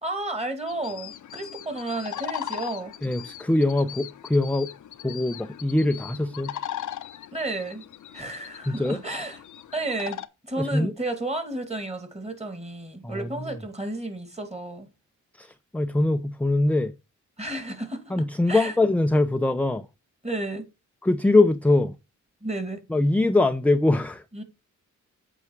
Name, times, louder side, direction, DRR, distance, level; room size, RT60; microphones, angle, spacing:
voice 1, 0.0-2.9 7.3-7.9 8.1-9.4 9.7-10.2 10.5-14.9 17.4-18.1 18.5-18.8 20.2-20.7 22.4-22.8 24.3-24.4, right 2 dB, 20° right, 2.3 m, -32 dB
sound 1, 0.7-10.3, left 11 dB, 70° left, 0.8 m, -39 dB
voice 2, 3.0-4.7 5.0-6.6 8.7-9.0 10.6-10.9 13.0-13.3 15.4-16.9 18.1-19.8 21.0-21.9 22.9-24.2, left 2 dB, 5° left, 0.5 m, -22 dB
8.1 x 4.9 x 4.6 m
cardioid pair, 85°, 31 cm